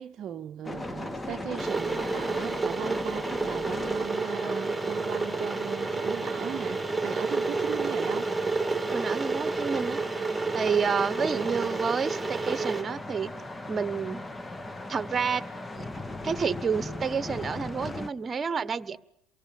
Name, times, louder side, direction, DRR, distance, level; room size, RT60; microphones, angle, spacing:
voice 1, 0.0-8.3 11.2-11.8, right 10 dB, 50° right, 1.0 m, -38 dB
sound 1, 0.6-18.1, left 2 dB, 15° left, 1.7 m, -38 dB
Water / Boiling, 1.6-12.8, right 3 dB, 10° right, 2.8 m, -30 dB
voice 2, 8.9-10.0 10.5-13.3 13.7-14.2 14.9-15.4 15.7-15.9 16.2-19.0, right 6 dB, 30° right, 1.5 m, -29 dB
28.5 x 24.0 x 7.1 m
hypercardioid pair, 70°, 0 cm